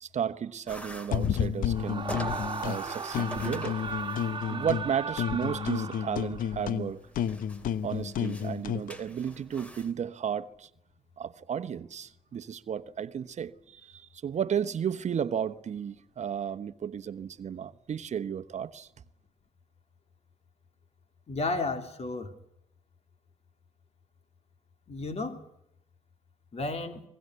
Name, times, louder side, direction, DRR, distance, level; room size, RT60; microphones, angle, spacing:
voice 1, 0.0-2.1 2.6-3.8 4.5-7.0 7.8-10.7 11.2-18.9, right 8 dB, 55° right, 1.0 m, -33 dB
sound 1, 0.7-9.9, equal, 10° left, 3.2 m, -46 dB
sound 2, 1.1-2.8 3.1-4.9 5.2-8.9, left 9 dB, 70° left, 1.0 m, -31 dB
Screaming, 1.7-6.5, right 5 dB, 35° right, 1.9 m, -37 dB
voice 2, 21.3-22.3 24.9-25.4 26.5-27.0, left 3 dB, 45° left, 3.3 m, -32 dB
24.0 x 21.0 x 8.2 m
supercardioid pair, 60°, 14 cm